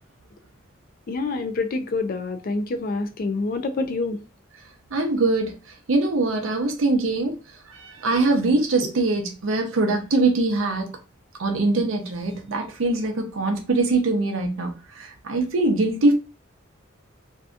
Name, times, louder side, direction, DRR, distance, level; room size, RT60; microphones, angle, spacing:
voice 1, 1.1-4.2, left 3 dB, 45° left, 0.4 m, -27 dB
voice 2, 4.9-7.4 7.6-10.9 11.4-16.1, right 2 dB, 85° right, 0.6 m, -23 dB
2.6 x 2.2 x 2.4 m
head